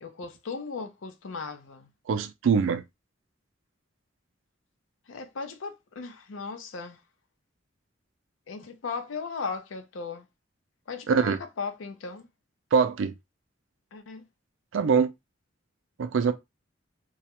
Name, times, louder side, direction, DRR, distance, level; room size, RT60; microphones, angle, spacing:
voice 1, 0.0-1.9 5.1-7.0 8.5-10.3 10.9-12.3 13.9-14.3, left 4 dB, 85° left, 0.5 m, -37 dB
voice 2, 2.1-2.8 11.1-11.4 12.7-13.1 14.7-15.1 16.0-16.3, right 6 dB, 80° right, 0.4 m, -23 dB
2.3 x 2.1 x 2.8 m
head